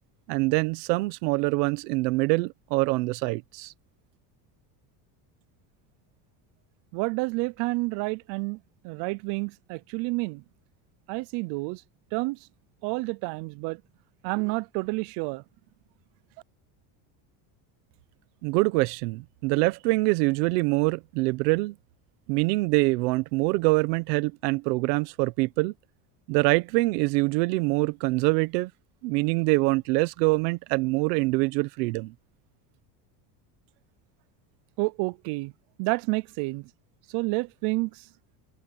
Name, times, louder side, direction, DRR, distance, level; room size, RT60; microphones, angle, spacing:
voice 1, 0.3-3.7 18.4-21.7 22.3-25.7 26.3-28.7 29.0-32.1, right 24 dB, 85° right, 1.3 m, -24 dB
voice 2, 6.9-8.6 8.8-10.4 11.1-11.8 12.1-12.4 12.8-13.8 14.2-15.4 34.8-35.5 35.8-36.7 37.1-38.0, right 26 dB, 55° right, 0.6 m, -29 dB
cardioid pair, 160°, 47 cm